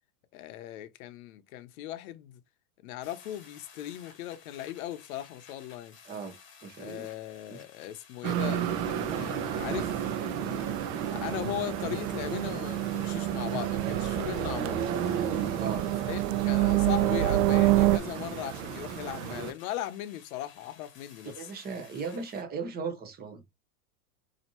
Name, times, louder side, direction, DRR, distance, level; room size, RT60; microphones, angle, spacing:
voice 1, 0.3-2.4 2.8-6.0 6.8-10.6 11.1-14.8 16.1-21.5, left 13 dB, 65° left, 0.8 m, -38 dB
sound 1, 3.0-22.4, left 6 dB, 25° left, 1.2 m, -55 dB
voice 2, 6.0-6.4 6.6-7.1 7.5-7.6 15.6-15.8 21.3-23.4, right 5 dB, 20° right, 0.8 m, -37 dB
Sound of the city, 8.2-19.5, right 8 dB, 45° right, 0.8 m, -33 dB
sound 2, 9.5-18.0, right 16 dB, 75° right, 0.5 m, -28 dB
4.2 x 2.8 x 2.9 m
supercardioid pair, 140°, 45 cm